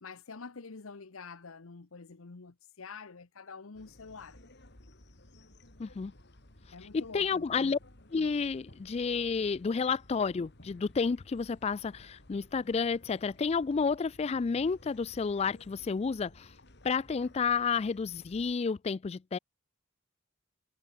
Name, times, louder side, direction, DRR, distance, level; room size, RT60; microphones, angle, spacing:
voice 1, 0.0-4.4 6.7-7.7, left 4 dB, 90° left, 1.0 m, -47 dB
sound 1, 3.7-18.5, left 1 dB, 55° left, 3.4 m, -57 dB
voice 2, 5.8-6.1 6.9-7.8 8.1-16.5 16.8-19.4, left 5 dB, 30° left, 0.3 m, -31 dB
head